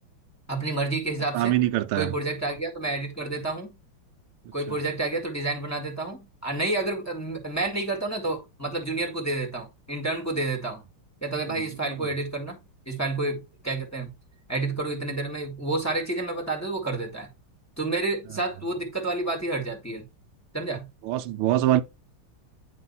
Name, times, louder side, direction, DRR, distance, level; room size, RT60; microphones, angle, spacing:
voice 1, 0.5-1.6 1.9-3.8 4.5-10.8 11.2-14.1 14.5-17.3 17.8-20.0 20.5-20.9, right 2 dB, 10° left, 1.8 m, -29 dB
voice 2, 1.3-2.1 21.0-21.8, right 14 dB, 80° right, 1.5 m, -23 dB
9.6 x 3.3 x 5.5 m
omnidirectional pair, 2.4 m